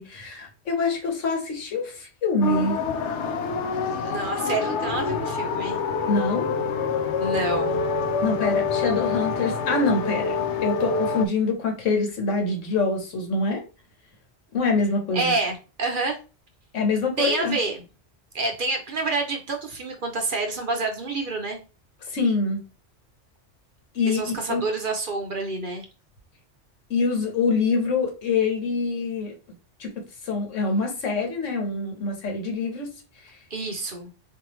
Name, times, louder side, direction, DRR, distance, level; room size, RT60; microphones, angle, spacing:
voice 1, 0.0-2.8 6.1-6.5 8.2-10.4 10.6-13.6 14.5-15.3 16.7-17.6 22.1-22.6 23.9-24.2 24.5-24.6 26.9-29.3 29.8-29.9 30.2-32.9, left 3 dB, 90° left, 2 dB, 1.4 m, -25 dB
sound 1, 2.4-11.3, left 5 dB, 70° left, 0.9 m, -26 dB
voice 2, 4.0-5.8 7.2-7.8 15.1-16.2 17.2-17.8 18.3-21.6 24.1-25.9 33.5-34.1, right 3 dB, 50° right, 3 dB, 0.8 m, -28 dB
4.4 x 2.7 x 3.0 m, 0.33 s
omnidirectional pair, 1.3 m